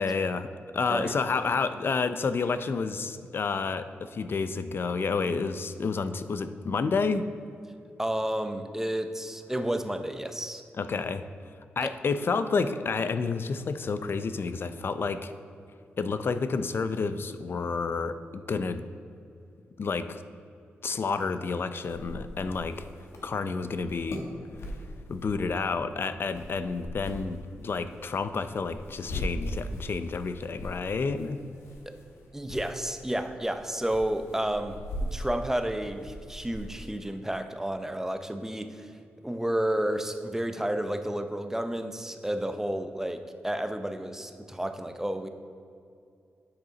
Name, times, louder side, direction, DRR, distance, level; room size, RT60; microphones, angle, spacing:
voice 1, 0.0-7.3 10.7-15.3 16.0-18.8 19.8-20.2 20.8-22.9 23.2-24.2 24.5-31.4, left 4 dB, 55° left, 11 dB, 0.4 m, -30 dB
voice 2, 8.0-10.6 11.8-11.9 31.9-32.0 32.3-38.9 39.2-45.3, right 1 dB, 10° right, 8 dB, 0.6 m, -31 dB
sound 1, 21.9-37.1, equal, 80° left, 1.1 m, -40 dB
9.5 x 4.9 x 3.9 m, 2.5 s
cardioid pair, 55°, 5 cm